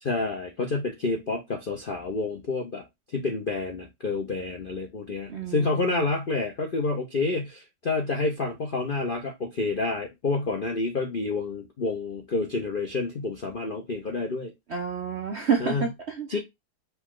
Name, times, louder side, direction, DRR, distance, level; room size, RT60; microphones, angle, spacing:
voice 1, 0.0-2.8 3.1-14.5 15.6-15.8 16.3-16.4, left 3 dB, 60° left, 0.5 m, -29 dB
voice 2, 5.3-6.0 14.7-16.4, right 6 dB, 60° right, 0.7 m, -29 dB
5.6 x 2.3 x 3.6 m
omnidirectional pair, 2.0 m